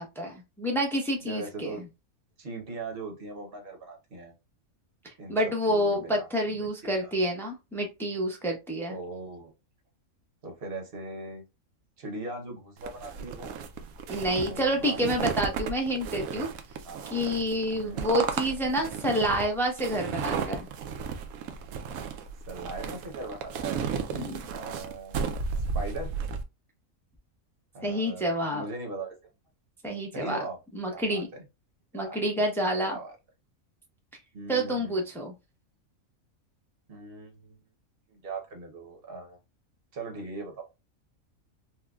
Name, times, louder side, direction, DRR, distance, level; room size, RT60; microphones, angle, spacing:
voice 1, 0.0-1.8 5.0-9.0 14.1-16.5 17.1-20.7 24.1-24.4 27.8-28.6 29.8-30.4 30.7-31.3 31.9-33.0 34.5-35.3, equal, 5° left, 0.4 m, -28 dB
voice 2, 1.2-1.8 2.4-4.3 5.2-7.1 8.9-9.5 10.4-11.4 12.0-13.5 14.4-15.3 16.8-17.1 17.7-18.1 22.5-23.8 24.5-26.1 27.7-29.1 30.1-30.6 30.9-31.4 31.9-32.2 32.8-33.1 34.3-35.0 36.9-37.6 38.1-39.4 39.9-40.6, right 3 dB, 50° right, 0.9 m, -40 dB
sound 1, 12.8-26.4, right 6 dB, 80° right, 1.0 m, -34 dB
4.5 x 2.1 x 2.3 m
omnidirectional pair, 1.5 m